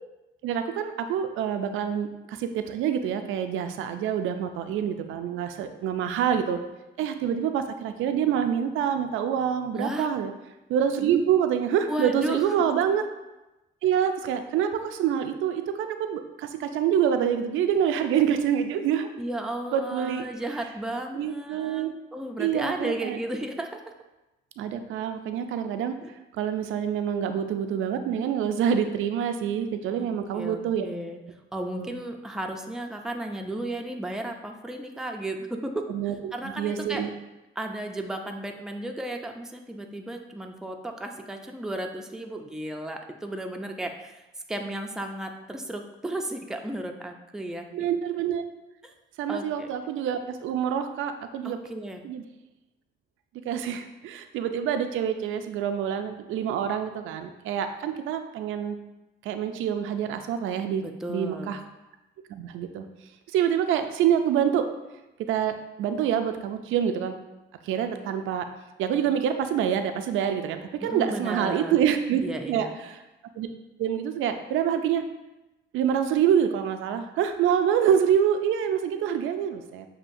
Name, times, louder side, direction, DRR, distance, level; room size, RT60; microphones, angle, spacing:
voice 1, 0.4-6.6 7.0-10.3 10.7-13.0 13.8-19.1 19.7-20.2 21.1-21.9 22.4-23.2 24.6-26.0 26.4-30.9 31.8-31.9 35.9-36.1 36.6-37.1 47.7-48.4 49.2-51.6 52.0-52.2 53.5-58.8 59.2-60.8 61.1-61.6 62.3-62.9 63.3-64.7 65.3-67.1 67.7-68.5 68.8-73.0 73.4-73.5 73.8-75.0 75.7-79.9, right 8 dB, 85° right, 8 dB, 0.4 m, -26 dB
voice 2, 9.8-10.1 11.9-12.6 19.2-23.8 26.0-26.1 30.0-31.2 31.5-37.0 37.6-47.9 48.8-48.9 49.3-49.7 51.4-52.0 60.8-61.6 70.8-71.8 72.2-72.8, right 1 dB, 5° right, 3 dB, 0.4 m, -34 dB
7.0 x 2.7 x 2.6 m, 1.0 s
cardioid pair, 90°, 20 cm